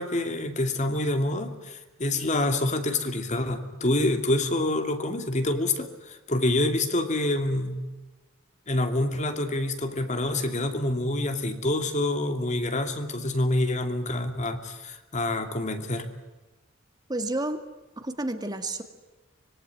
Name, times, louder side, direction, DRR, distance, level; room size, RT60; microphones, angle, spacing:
voice 1, 0.0-7.8 8.7-16.1, left 1 dB, 35° left, 7 dB, 2.7 m, -27 dB
voice 2, 17.1-17.6 18.0-18.8, right 2 dB, 20° right, 7 dB, 2.1 m, -30 dB
26.0 x 21.5 x 9.4 m, 1.1 s
head